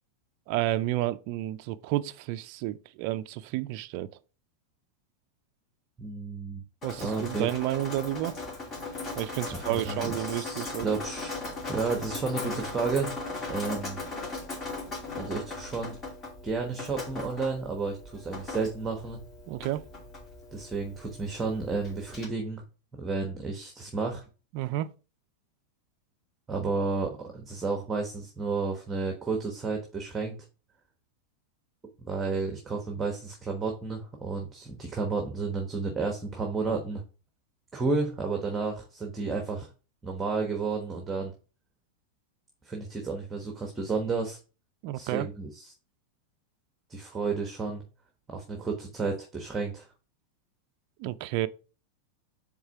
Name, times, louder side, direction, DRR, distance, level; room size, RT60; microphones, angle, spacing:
voice 1, 0.5-4.1 6.8-8.4 9.2-10.9 19.5-19.8 24.5-24.9 44.8-45.3 51.0-51.5, right 15 dB, 55° right, 0.4 m, -31 dB
voice 2, 6.0-6.6 7.0-7.5 9.5-11.4 11.6-13.1 13.5-14.0 15.2-16.0 16.4-19.2 20.5-22.6 22.9-24.2 26.5-30.4 32.0-37.0 37.7-39.7 40.0-41.3 42.6-44.4 44.9-45.7 46.9-47.8 48.3-49.9, right 4 dB, 15° right, 1.2 m, -32 dB
Drip, 6.8-22.3, left 3 dB, 30° left, 2.4 m, -38 dB
4.7 x 3.6 x 5.6 m
hypercardioid pair, 120°, 0 cm